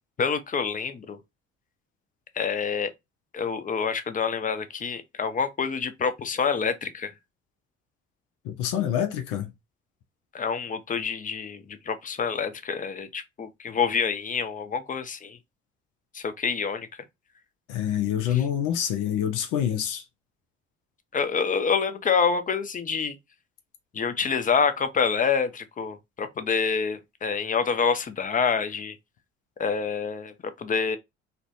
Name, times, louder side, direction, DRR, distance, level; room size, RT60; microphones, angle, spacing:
voice 1, 0.2-1.2 2.4-2.9 3.3-7.1 10.3-15.4 16.1-16.9 18.3-18.4 21.1-23.2 23.9-28.9 29.6-31.0, left 6 dB, 25° left, 0.5 m, -27 dB
voice 2, 8.4-9.5 17.7-20.0, left 10 dB, 70° left, 0.6 m, -26 dB
2.5 x 2.1 x 2.4 m
hypercardioid pair, 50°, 33 cm